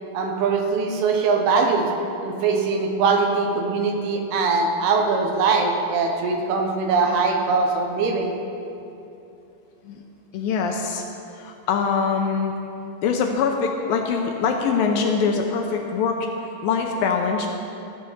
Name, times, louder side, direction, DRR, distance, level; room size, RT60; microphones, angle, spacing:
voice 1, 0.1-1.9 2.2-8.3, right 4 dB, 80° right, 3 dB, 3.0 m, -22 dB
voice 2, 10.3-11.1 11.3-12.5 13.0-16.3 16.6-17.5, left 5 dB, 75° left, 3 dB, 2.3 m, -23 dB
14.0 x 6.6 x 7.2 m, 2.8 s
omnidirectional pair, 4.6 m